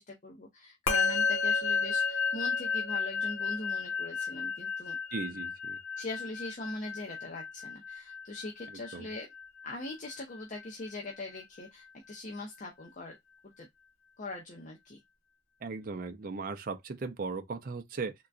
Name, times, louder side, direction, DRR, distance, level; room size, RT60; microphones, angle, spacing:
voice 1, 0.0-5.0 6.0-9.3 9.6-13.2 13.6-13.7 14.2-15.0, left 2 dB, 40° left, 0.6 m, -41 dB
Musical instrument, 0.9-10.4, left 5 dB, 85° left, 1.3 m, -32 dB
voice 2, 5.1-5.8 8.9-9.1 15.6-18.1, right 4 dB, 45° right, 0.5 m, -37 dB
3.8 x 2.2 x 2.3 m
head